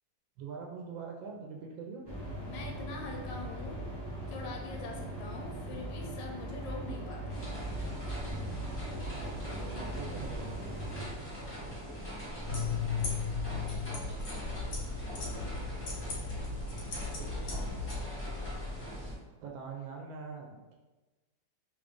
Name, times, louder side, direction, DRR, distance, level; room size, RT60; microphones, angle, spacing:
voice 1, 0.4-2.1 9.5-10.5 18.9-19.1 19.4-20.7, right 5 dB, 90° right, -1 dB, 1.3 m, -43 dB
sound 1, 2.0-11.1, right 1 dB, 35° right, 0.4 m, -40 dB
voice 2, 2.4-3.8 4.3-7.4, left 3 dB, 80° left, 0 dB, 1.3 m, -43 dB
sound 2, 7.3-19.1, equal, 10° left, 0.6 m, -41 dB
sound 3, 12.5-18.0, left 5 dB, 60° left, 1.3 m, -36 dB
3.2 x 2.5 x 3.5 m, 1.2 s
omnidirectional pair, 2.0 m